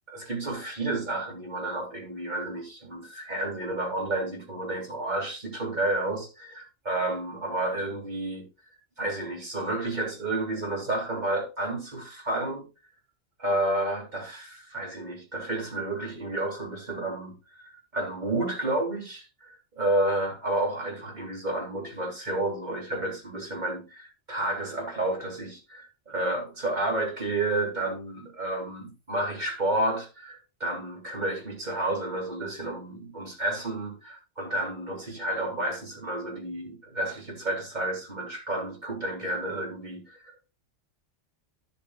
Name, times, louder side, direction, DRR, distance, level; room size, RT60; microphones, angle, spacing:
voice 1, 0.1-8.5 9.0-12.6 13.4-40.5, right 2 dB, 35° right, 3.1 m, -31 dB
13.0 x 7.1 x 2.3 m
omnidirectional pair, 1.3 m